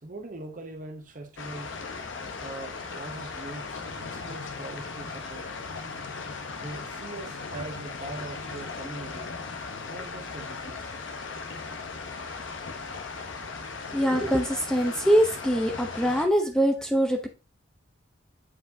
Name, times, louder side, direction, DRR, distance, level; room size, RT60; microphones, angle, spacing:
voice 1, 0.0-1.8 2.4-5.7 6.6-9.3 9.9-10.9 14.5-14.6, right 2 dB, 40° right, 0.8 m, -42 dB
sound 1, 1.4-16.3, left 4 dB, 70° left, 0.9 m, -37 dB
voice 2, 13.9-17.3, equal, 5° left, 0.7 m, -23 dB
8.5 x 4.8 x 2.7 m
head